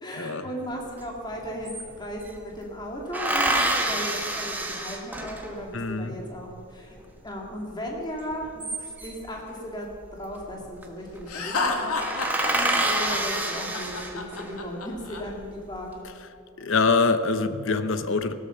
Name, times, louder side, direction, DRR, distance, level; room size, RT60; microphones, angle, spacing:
voice 1, 0.0-7.0 7.2-11.9 12.5-16.0, equal, 20° left, -1 dB, 2.3 m, -36 dB
sound 1, 1.0-1.1 1.3-2.4 3.1-5.7 8.3-9.3 10.5-10.8 11.2-11.3 11.6-11.7 12.0-14.5 15.1-15.8, right 1 dB, 10° right, 1.2 m, -27 dB
voice 2, 5.7-6.2 16.6-18.3, left 4 dB, 60° left, 11 dB, 0.8 m, -24 dB
Laughter, 11.3-15.2, left 3 dB, 85° left, 1.8 m, -30 dB
16.0 x 13.0 x 5.6 m, 2.6 s
head